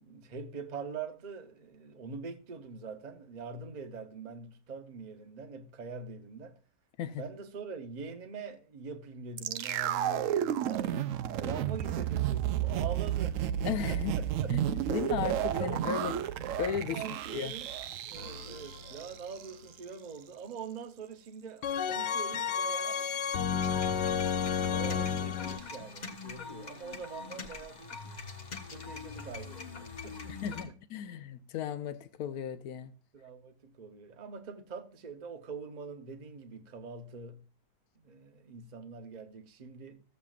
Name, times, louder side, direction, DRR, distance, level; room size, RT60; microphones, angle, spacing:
voice 1, 0.0-6.6 7.2-10.9 11.4-13.4 13.9-14.5 14.9-15.0 15.6-15.8 16.9-17.7 18.1-24.0 24.7-28.0 28.7-30.7 33.1-37.5 38.0-40.0, right 5 dB, 40° right, 0.7 m, -44 dB
sound 1, 9.4-19.5 19.8-19.9, right 10 dB, 70° right, 0.8 m, -32 dB
voice 2, 13.6-14.2 14.5-14.6 14.9-16.1 16.6-17.0 17.3-17.6 30.3-32.9, left 9 dB, 65° left, 1.2 m, -35 dB
sound 2, 18.2-18.9 21.6-25.6, left 7 dB, 90° left, 1.4 m, -31 dB
sound 3, 23.6-30.6, left 4 dB, 30° left, 0.9 m, -43 dB
15.0 x 7.4 x 2.4 m
omnidirectional pair, 1.8 m